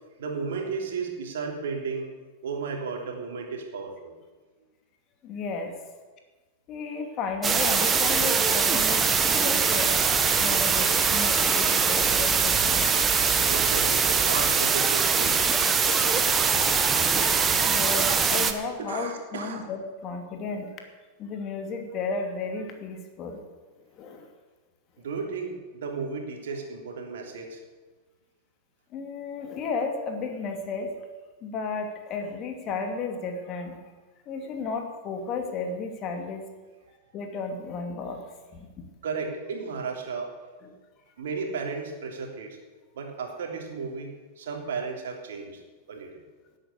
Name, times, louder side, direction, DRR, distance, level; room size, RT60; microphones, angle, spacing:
voice 1, 0.2-2.1 2.4-4.1 13.5-16.8 18.8-19.6 25.0-27.6 39.0-40.3 41.2-42.6 42.9-45.6 45.9-46.2, right 4 dB, 60° right, 2 dB, 3.1 m, -34 dB
voice 2, 5.2-5.8 6.7-12.9 17.6-20.8 21.2-23.5 23.9-24.3 28.9-30.9 31.4-33.9 34.3-36.5 37.1-38.2 38.5-38.9 40.6-40.7, left 4 dB, 35° left, 4 dB, 2.6 m, -33 dB
sound 1, 7.4-18.5, right 5 dB, 20° right, 1.4 m, -22 dB
18.0 x 8.8 x 8.1 m, 1.3 s
figure-of-eight pair, 90°, 0 cm